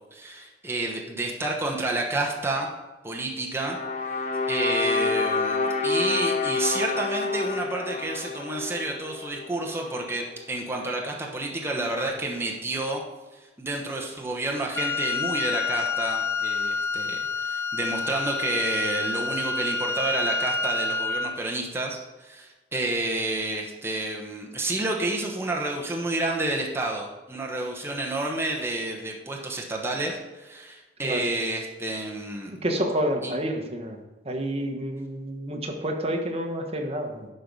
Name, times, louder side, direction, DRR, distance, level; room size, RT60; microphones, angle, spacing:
voice 1, 0.1-2.7 3.0-3.8 4.5-13.0 13.6-32.5 33.2-33.3, right 2 dB, 15° right, -1 dB, 1.1 m, -30 dB
sound 1, 3.6-9.8, left 4 dB, 45° left, 0.9 m, -28 dB
Wind instrument woodwind instrument, 14.7-21.4, left 4 dB, 15° left, 0.3 m, -28 dB
voice 2, 32.6-34.0 34.2-37.3, equal, 35° right, 3 dB, 1.2 m, -29 dB
11.0 x 4.8 x 5.4 m, 1.2 s
head